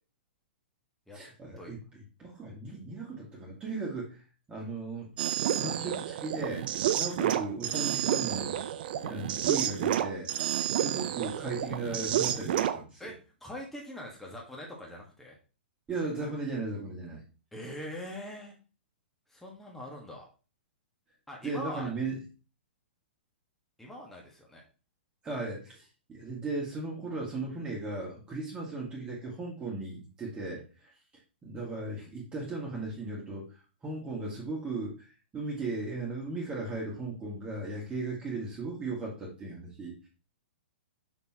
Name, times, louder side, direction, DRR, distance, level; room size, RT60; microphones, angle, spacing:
voice 1, 1.1-1.8 2.2-4.2 4.5-5.1 5.4-6.7 7.0-8.6 9.0-10.3 10.7-13.1 15.9-17.2 21.4-22.2 25.2-30.9 31.4-40.1, right 3 dB, 15° right, -3 dB, 2.0 m, -37 dB
sound 1, 5.2-12.8, right 11 dB, 55° right, 0.6 m, -30 dB
voice 2, 13.4-15.3 17.5-18.6 19.3-20.3 21.3-21.9 23.8-24.6, left 1 dB, 5° left, -2 dB, 1.6 m, -42 dB
6.1 x 5.4 x 2.9 m, 0.34 s
hypercardioid pair, 120°, 6 cm